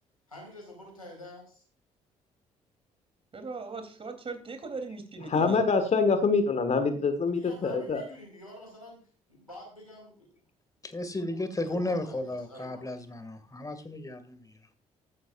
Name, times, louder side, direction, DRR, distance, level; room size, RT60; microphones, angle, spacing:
voice 1, 0.3-1.6 7.3-10.3 11.7-13.1, left 1 dB, 90° left, -1 dB, 4.9 m, -48 dB
voice 2, 3.3-5.6, right 4 dB, 30° right, 7 dB, 3.5 m, -39 dB
voice 3, 5.2-8.0, left 4 dB, 40° left, 8 dB, 1.8 m, -25 dB
voice 4, 10.8-14.5, left 1 dB, 20° left, 10 dB, 2.3 m, -34 dB
14.5 x 13.0 x 2.6 m, 0.40 s
figure-of-eight pair, 45°, 18 cm